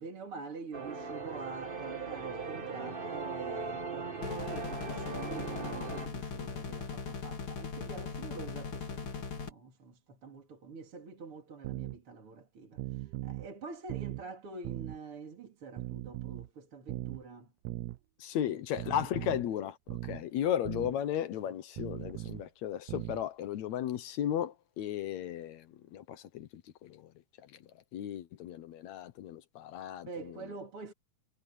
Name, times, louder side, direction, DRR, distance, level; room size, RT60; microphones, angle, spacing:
voice 1, 0.0-17.5 18.3-18.6 20.8-20.9 30.0-30.9, right 4 dB, 50° right, 3.3 m, -46 dB
sound 1, 0.7-6.1, right 4 dB, 30° right, 0.9 m, -39 dB
sound 2, 4.2-9.5, left 5 dB, 45° left, 2.9 m, -39 dB
sound 3, 11.6-12.0 12.8-13.5 13.9-14.2 14.6-15.0 15.8-16.5 16.9-17.2 17.7-18.0 18.8-19.5 19.9-20.2 20.7-20.9 21.8-22.5 22.9-23.2, right 17 dB, 75° right, 1.6 m, -39 dB
voice 2, 18.2-27.1 27.4-27.6 27.9-30.4, left 10 dB, 75° left, 2.2 m, -35 dB
omnidirectional pair, 3.4 m